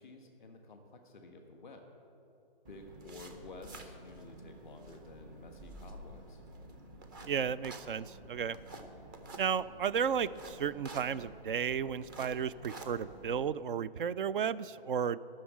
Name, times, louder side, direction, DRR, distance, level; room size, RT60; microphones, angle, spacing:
voice 1, 0.0-1.9 2.7-6.4, left 3 dB, ahead, 1 dB, 0.3 m, -51 dB
sound 1, 2.6-13.5, right 2 dB, 20° right, 0.7 m, -50 dB
voice 2, 7.3-8.6 9.4-15.2, right 7 dB, 60° right, 17 dB, 0.5 m, -33 dB
12.5 x 6.4 x 8.4 m, 2.8 s
hypercardioid pair, 155°, 29 cm